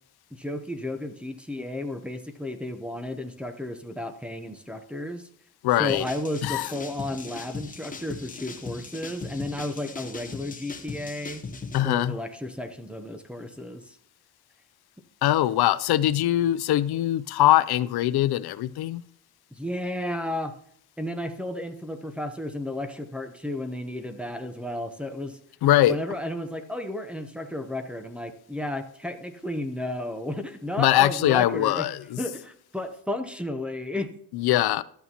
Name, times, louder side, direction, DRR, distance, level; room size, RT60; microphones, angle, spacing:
voice 1, 0.3-5.3 5.8-11.4 11.8-14.0 19.5-20.5 21.0-25.4 25.8-31.9 32.2-34.1, left 1 dB, 5° right, 4 dB, 0.7 m, -33 dB
voice 2, 5.6-6.0 6.4-6.7 11.7-12.1 15.2-19.0 25.6-26.0 30.8-32.2 34.3-34.8, left 13 dB, 75° left, 16 dB, 0.5 m, -22 dB
sound 1, 5.9-11.8, left 4 dB, 20° left, 0.9 m, -39 dB
12.5 x 8.4 x 2.8 m, 0.66 s
wide cardioid pair, 160°, 39 cm